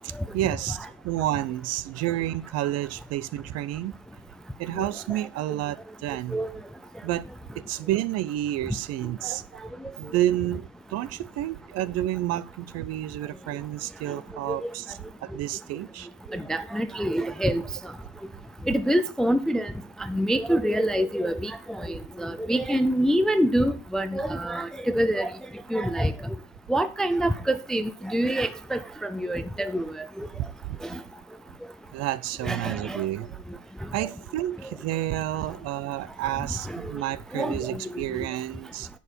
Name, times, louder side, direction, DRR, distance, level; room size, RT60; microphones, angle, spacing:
voice 1, 0.0-3.9 4.6-6.4 7.0-7.2 7.5-9.4 10.0-16.1 30.7-30.8 31.9-33.3 33.9-38.9, right 14 dB, 50° right, 0.6 m, -30 dB
voice 2, 16.3-17.6 18.7-19.7 20.1-25.3 25.7-26.1 26.7-30.3 30.9-31.0 32.4-33.0 36.7-36.8 37.3-38.0, right 1 dB, ahead, 0.4 m, -26 dB
10.5 x 7.0 x 4.4 m
cardioid pair, 150°, 33 cm